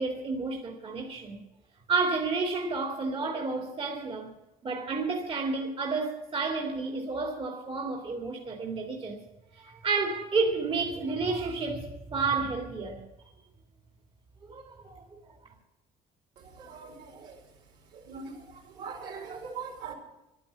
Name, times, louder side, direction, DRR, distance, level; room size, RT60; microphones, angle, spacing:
voice 1, 0.0-1.4 1.9-4.3 4.6-9.2 9.5-13.0 14.5-15.2, right 4 dB, 35° right, 2.2 m, -31 dB
voice 2, 16.4-17.4 17.9-19.9, right 5 dB, 80° right, 4.6 m, -42 dB
12.0 x 11.0 x 8.5 m
cardioid pair, 110°, 17 cm